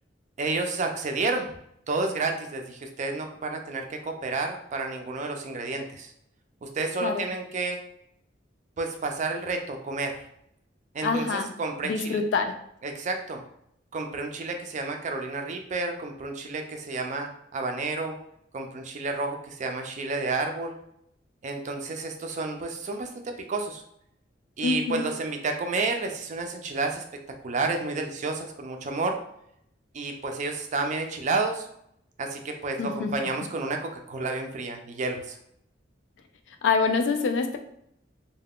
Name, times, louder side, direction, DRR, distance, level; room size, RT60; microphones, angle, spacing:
voice 1, 0.4-1.5 1.9-6.1 6.6-7.8 8.8-10.2 10.9-12.2 12.8-13.4 13.9-18.2 18.5-20.8 21.4-23.8 24.6-29.2 29.9-31.7 32.2-35.4, right 3 dB, 40° right, 4 dB, 0.4 m, -30 dB
voice 2, 11.0-11.5 11.8-12.5 24.6-25.0 32.8-33.1 36.6-37.6, left 4 dB, 70° left, 6 dB, 0.3 m, -25 dB
2.3 x 2.2 x 3.5 m, 0.73 s
head